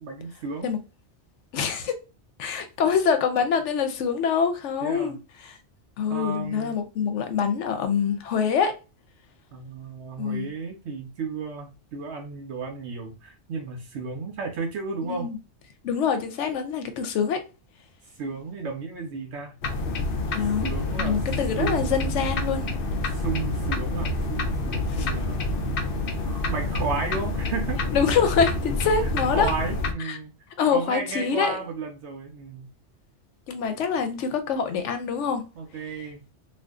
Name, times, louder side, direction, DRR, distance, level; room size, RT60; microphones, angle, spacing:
voice 1, 0.0-0.7 4.8-5.2 6.1-6.8 9.5-15.3 18.2-19.5 20.6-21.2 21.6-22.1 23.1-25.5 26.3-27.8 29.0-30.3 30.7-32.7 35.6-36.2, right 4 dB, 75° right, 0.9 m, -33 dB
voice 2, 1.5-1.9 2.4-5.2 5.5-5.6 6.0-8.7 10.2-10.5 15.0-15.4 15.8-17.4 20.3-22.7 24.9-25.1 27.9-29.5 30.1-30.2 30.6-31.6 33.5-35.4, left 6 dB, 90° left, 1.0 m, -25 dB
sound 1, 19.6-29.9, left 2 dB, 60° left, 0.6 m, -28 dB
2.6 x 2.4 x 3.5 m
omnidirectional pair, 1.2 m